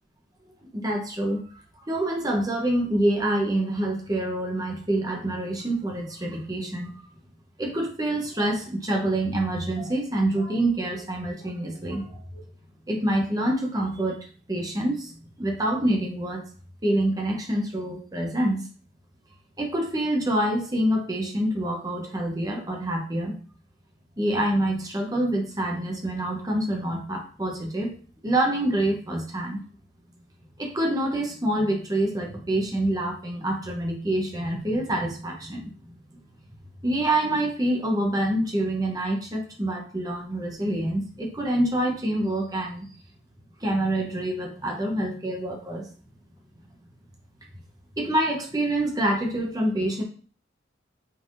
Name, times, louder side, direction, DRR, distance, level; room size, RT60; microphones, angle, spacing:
voice 1, 0.7-7.1 7.6-12.5 12.9-14.2 14.5-15.1 15.4-16.4 16.8-18.7 19.6-23.3 24.2-27.9 28.2-29.6 30.6-36.0 36.8-42.9 43.6-45.9 48.0-50.0, right 1 dB, 20° right, 0 dB, 0.8 m, -26 dB
5.3 x 3.5 x 2.5 m, 0.41 s
head